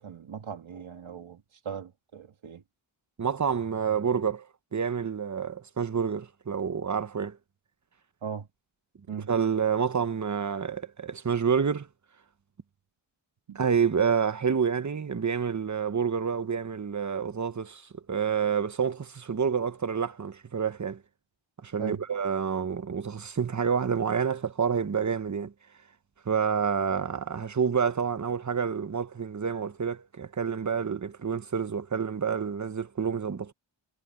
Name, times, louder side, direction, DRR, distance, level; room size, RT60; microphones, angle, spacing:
voice 1, 0.0-2.6 8.2-8.5 9.1-9.3 13.5-13.6 21.8-22.0, right 7 dB, 85° right, 2.2 m, -39 dB
voice 2, 3.2-4.5 4.7-7.4 9.3-11.9 13.5-21.0 21.6-25.5 26.2-33.5, right 6 dB, 40° right, 1.0 m, -28 dB
wide cardioid pair, 90°, 47 cm